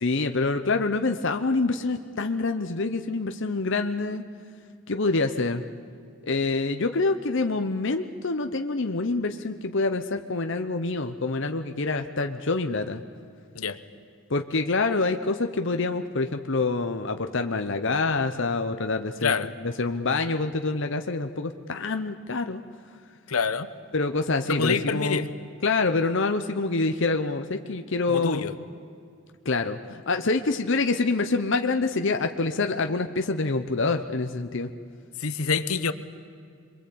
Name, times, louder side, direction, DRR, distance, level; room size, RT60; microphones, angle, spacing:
voice 1, 0.0-4.2 4.9-5.6 6.2-13.0 14.3-19.4 19.8-22.6 23.9-25.3 25.6-28.4 29.4-34.7, left 3 dB, 55° left, 7 dB, 0.9 m, -26 dB
voice 2, 19.2-19.5 23.3-23.7 24.5-25.3 28.1-28.5 35.2-35.9, left 5 dB, 80° left, 12 dB, 1.0 m, -26 dB
27.0 x 22.5 x 8.6 m, 2.3 s
head